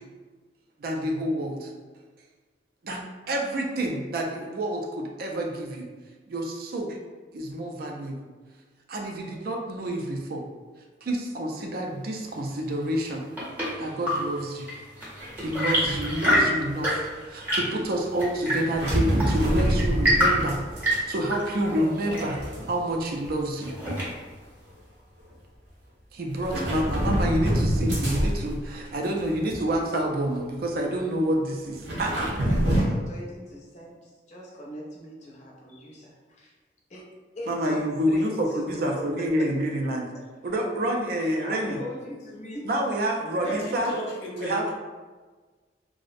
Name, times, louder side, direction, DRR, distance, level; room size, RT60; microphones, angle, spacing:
voice 1, 0.8-1.7 2.8-5.9 6.3-7.0 7.3-8.2 8.9-10.4 11.0-13.2 13.8-14.7 15.4-23.7 26.1-32.4 37.5-40.1 40.4-41.8 42.6-43.9 44.4-44.7, right 1 dB, 55° right, 1 dB, 0.4 m, -28 dB
Chirp tweet / Engine / Tap, 12.9-24.4, equal, 10° right, 0.7 m, -28 dB
sound 1, 15.2-15.5 15.8-16.7 18.7-21.0 21.3-23.0 23.3-23.6 24.7-24.8 26.4-28.8 29.2-29.9 30.3-30.4 31.7-32.8, equal, 85° right, 0.7 m, -26 dB
voice 2, 32.4-36.5 36.9-37.0 37.3-38.3 38.7-39.1 39.4-39.5 41.4-43.0, left 1 dB, 40° left, -3 dB, 0.5 m, -40 dB
voice 3, 43.4-44.7, equal, 85° left, -3 dB, 0.6 m, -34 dB
2.4 x 2.0 x 2.5 m, 1.4 s
head